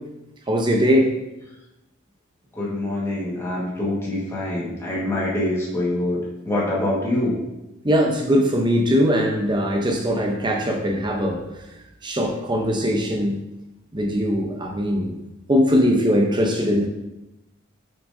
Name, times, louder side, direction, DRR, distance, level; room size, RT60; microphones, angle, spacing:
voice 1, 0.5-1.1 7.8-11.4 12.0-13.4 13.9-15.2 15.5-16.9, equal, 20° right, 2 dB, 0.7 m, -20 dB
voice 2, 2.6-7.3, left 1 dB, 15° left, -7 dB, 1.6 m, -25 dB
6.7 x 6.2 x 2.7 m, 0.93 s
head